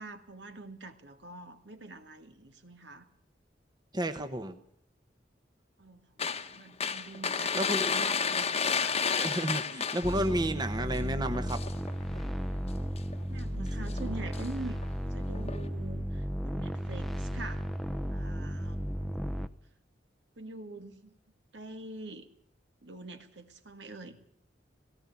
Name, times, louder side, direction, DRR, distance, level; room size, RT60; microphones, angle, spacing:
voice 1, 0.0-3.0 5.8-6.1 6.5-9.5 13.3-14.8 15.1-17.7 18.1-19.0 20.4-21.1 21.5-22.3 22.8-24.2, right 2 dB, 70° right, 7 dB, 2.0 m, -44 dB
voice 2, 3.9-4.6 7.5-7.9 9.2-11.6, right 1 dB, 25° right, 8 dB, 1.0 m, -31 dB
sound 1, 6.2-10.4 10.8-11.0 11.3-12.3 13.0-13.2 13.8-14.5 14.8-14.9 15.4-15.7, left 6 dB, 35° left, 1.1 m, -31 dB
sound 2, 10.0-19.5, equal, ahead, 0.7 m, -34 dB
18.0 x 17.0 x 8.5 m, 0.65 s
head